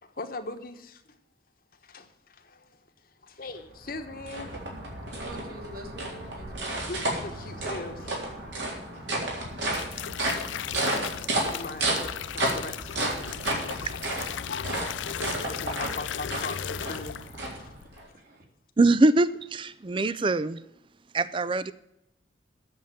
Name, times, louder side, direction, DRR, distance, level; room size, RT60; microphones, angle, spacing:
voice 1, 0.0-1.0 1.8-2.8 3.2-4.6 6.9-8.5 8.9-9.0 10.5-10.6 11.5-13.2 14.1-15.0 15.4-17.2 17.6-18.0, left 3 dB, 50° left, 6 dB, 1.2 m, -40 dB
sound 1, 3.6-18.0, right 1 dB, 75° right, 3.7 m, -32 dB
voice 2, 5.1-6.8 17.5-17.7 18.1-18.4, right 1 dB, 50° right, 1 dB, 2.6 m, -45 dB
sound 2, 9.5-17.5 17.8-18.1, left 9 dB, 80° left, 0.4 m, -36 dB
voice 3, 18.8-20.6 21.1-21.7, right 2 dB, 25° right, 15 dB, 0.4 m, -23 dB
8.9 x 7.2 x 8.9 m, 0.82 s
head